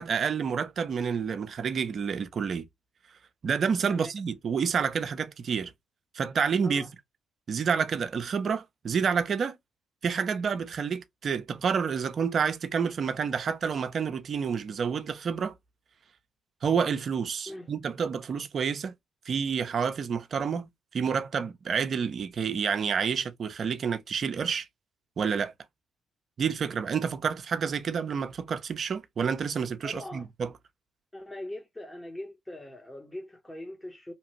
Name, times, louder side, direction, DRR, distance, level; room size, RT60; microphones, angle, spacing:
voice 1, 0.0-2.7 3.4-5.7 6.1-6.9 7.5-9.6 10.0-15.5 16.6-18.9 19.3-24.7 25.2-25.5 26.4-30.5, right 6 dB, 55° right, 0.5 m, -29 dB
voice 2, 29.8-30.3 31.1-34.1, left 1 dB, 15° left, 0.9 m, -41 dB
2.9 x 2.4 x 2.9 m
hypercardioid pair, 50°, 0 cm